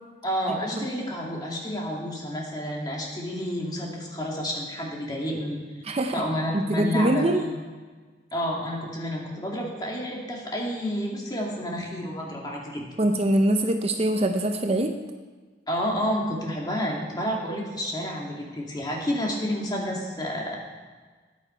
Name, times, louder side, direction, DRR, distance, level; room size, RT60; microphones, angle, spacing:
voice 1, 0.2-5.6 6.1-7.5 8.3-12.8 15.7-20.6, equal, 25° left, -2 dB, 2.4 m, -30 dB
voice 2, 5.8-6.2 6.5-7.4 13.0-14.9, right 1 dB, 35° right, 6 dB, 0.6 m, -23 dB
14.0 x 9.9 x 4.5 m, 1.4 s
head